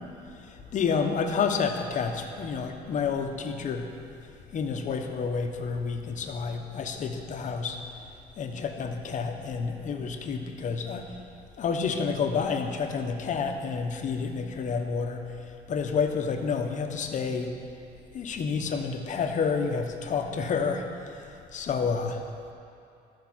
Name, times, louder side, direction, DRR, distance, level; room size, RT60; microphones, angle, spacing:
voice 1, 0.5-3.9 4.5-7.8 8.4-11.1 11.6-15.4 15.7-17.5 18.1-21.2 21.5-22.2, left 5 dB, 50° left, 5 dB, 0.9 m, -29 dB
12.5 x 4.7 x 6.1 m, 2.5 s
cardioid pair, 110°, 17 cm